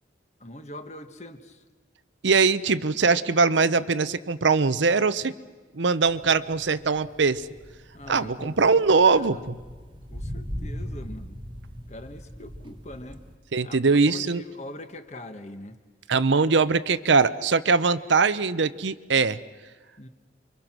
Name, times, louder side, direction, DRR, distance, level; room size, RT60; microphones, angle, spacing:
voice 1, 0.4-1.6 7.9-9.4 10.1-11.4 11.9-13.3 13.6-15.8 20.0-20.1, left 1 dB, 35° left, 8 dB, 1.4 m, -42 dB
voice 2, 2.2-5.3 5.7-7.5 8.1-9.5 13.5-14.4 16.1-19.4, right 4 dB, 75° right, 14 dB, 0.7 m, -21 dB
sound 1, 6.0-13.3, equal, 25° right, 1.4 m, -39 dB
29.5 x 24.0 x 6.1 m, 1.4 s
head